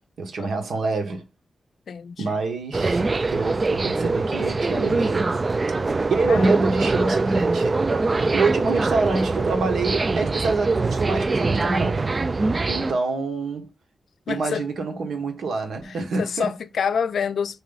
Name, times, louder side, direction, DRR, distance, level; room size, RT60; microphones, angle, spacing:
voice 1, 0.2-1.2 2.2-5.4 6.1-7.8 8.3-12.1 12.7-13.7 14.3-16.5, right 3 dB, 85° right, 1.5 m, -26 dB
voice 2, 1.9-2.4 6.3-6.6 14.3-14.7 15.8-17.6, left 7 dB, 80° left, 0.5 m, -28 dB
sound 1, 2.7-12.9, right 3 dB, 35° right, 0.3 m, -23 dB
5.3 x 4.5 x 4.0 m
wide cardioid pair, 115°, 0 cm